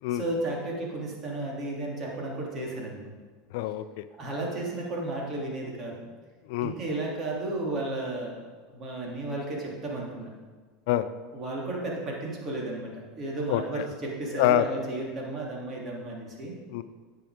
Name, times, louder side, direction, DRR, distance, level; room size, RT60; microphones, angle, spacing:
voice 1, 0.1-3.1 4.2-6.1 6.6-8.4 8.7-10.3 11.3-12.9 13.2-16.5, right 2 dB, 40° right, -2 dB, 3.4 m, -33 dB
voice 2, 3.5-4.0 6.5-6.7 10.9-11.1 13.5-13.8 14.3-14.7 16.7-16.8, left 13 dB, 70° left, 13 dB, 0.5 m, -26 dB
10.5 x 7.7 x 5.2 m, 1.5 s
supercardioid pair, 105°, 0 cm